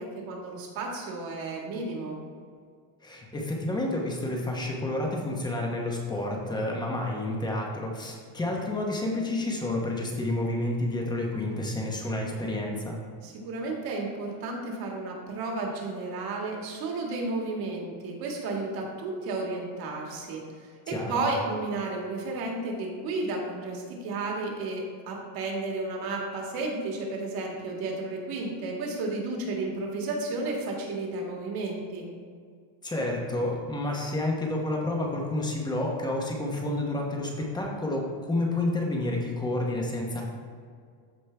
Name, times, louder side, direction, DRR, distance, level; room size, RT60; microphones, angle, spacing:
voice 1, 0.0-2.2 13.2-20.4 20.9-32.1, right 3 dB, 45° right, 0 dB, 1.9 m, -32 dB
voice 2, 3.0-13.0 20.9-21.2 32.8-40.2, left 1 dB, 10° left, -1 dB, 1.0 m, -30 dB
14.0 x 5.1 x 3.4 m, 2.1 s
cardioid pair, 175°, 49 cm